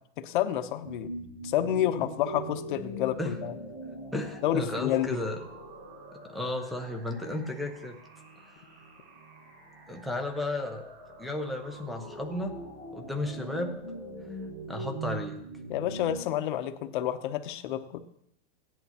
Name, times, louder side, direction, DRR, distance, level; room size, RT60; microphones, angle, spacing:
voice 1, 0.2-1.1 1.4-3.5 4.4-5.2 15.7-18.0, left 11 dB, 45° left, 8 dB, 0.9 m, -29 dB
sound 1, 0.8-16.2, right 1 dB, 35° right, 5.1 m, -42 dB
voice 2, 4.1-5.4 6.1-8.0 9.9-10.9 11.2-12.5 12.9-13.8 14.7-15.4, left 1 dB, ahead, 5 dB, 0.6 m, -33 dB
16.5 x 10.5 x 2.9 m, 0.75 s
supercardioid pair, 165°, 33 cm